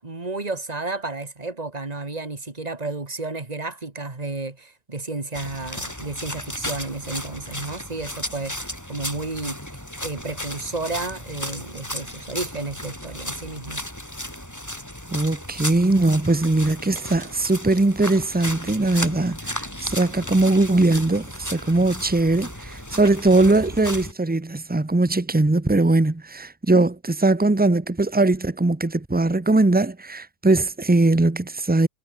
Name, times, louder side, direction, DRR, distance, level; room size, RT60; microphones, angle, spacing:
voice 1, 0.0-9.6 10.0-13.8, right 3 dB, 25° right, 2.2 m, -32 dB
sound 1, 5.3-24.1, equal, 10° left, 7.5 m, -34 dB
voice 2, 15.1-31.9, right 2 dB, 10° right, 0.4 m, -20 dB
omnidirectional pair, 1.5 m